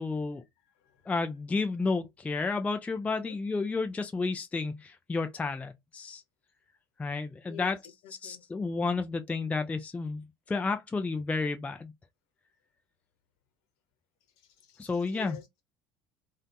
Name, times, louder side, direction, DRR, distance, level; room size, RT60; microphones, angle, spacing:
voice 1, 0.0-0.4 1.1-6.2 7.0-7.8 8.2-11.9 14.8-15.4, left 4 dB, 10° left, 0.3 m, -31 dB
voice 2, 0.6-1.1 3.1-3.4 7.4-7.8 8.0-8.4 14.4-15.6, left 8 dB, 55° left, 0.9 m, -49 dB
2.4 x 2.4 x 2.2 m
figure-of-eight pair, 60°, 13 cm